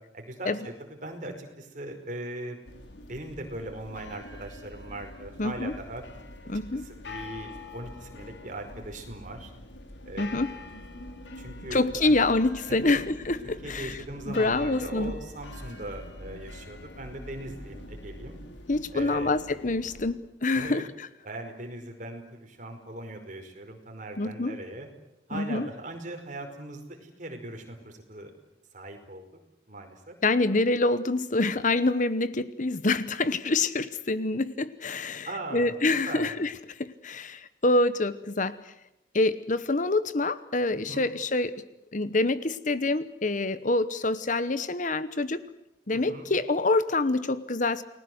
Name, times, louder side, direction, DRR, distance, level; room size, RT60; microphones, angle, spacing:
voice 1, 0.1-2.6 3.1-6.0 6.7-9.5 10.0-10.4 11.4-12.1 12.7-13.0 13.4-18.4 18.9-19.3 20.5-20.8 21.2-24.9 25.3-28.3 28.7-29.2 29.7-30.2 35.2-35.7 36.0-36.3 40.7-41.1 45.9-46.3, right 1 dB, 45° right, 4 dB, 5.1 m, -40 dB
sound 1, 2.6-20.1, left 2 dB, 75° left, 3.7 m, -44 dB
voice 2, 5.4-5.7 6.5-6.9 10.2-10.5 11.7-13.9 14.3-15.1 18.7-21.1 24.2-24.6 25.3-25.7 30.2-35.3 35.5-36.5 36.8-38.6 39.1-41.5 41.9-45.4 45.9-47.8, left 2 dB, 45° left, 14 dB, 1.0 m, -26 dB
29.5 x 20.0 x 8.0 m, 0.88 s
head